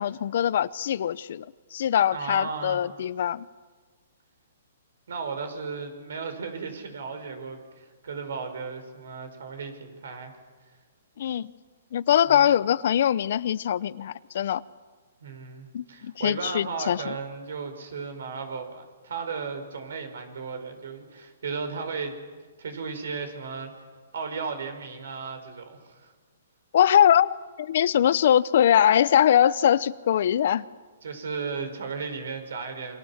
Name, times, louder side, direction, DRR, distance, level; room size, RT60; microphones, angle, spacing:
voice 1, 0.0-1.4 1.7-3.5 11.2-11.5 11.9-14.6 15.7-17.1 26.7-30.7, left 10 dB, 55° left, 0.8 m, -22 dB
voice 2, 2.1-2.8 5.1-10.3 12.2-12.5 15.2-22.2 22.6-23.7 24.1-26.1 31.0-33.0, right 5 dB, 75° right, 5.7 m, -35 dB
28.5 x 25.0 x 7.5 m
hypercardioid pair, 160°, 0 cm